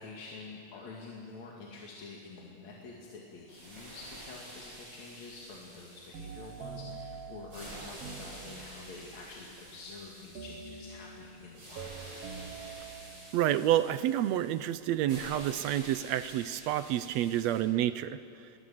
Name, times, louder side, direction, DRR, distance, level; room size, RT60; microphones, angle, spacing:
voice 1, 0.0-12.0, left 3 dB, 60° left, -2 dB, 3.5 m, -47 dB
sound 1, 3.5-17.6, right 1 dB, 35° right, 7.7 m, -49 dB
sound 2, 6.1-9.1 10.3-13.6, right 5 dB, 55° right, 2.3 m, -45 dB
voice 2, 13.3-18.2, right 12 dB, 75° right, 13 dB, 1.6 m, -29 dB
29.5 x 22.0 x 7.3 m, 2.6 s
omnidirectional pair, 3.6 m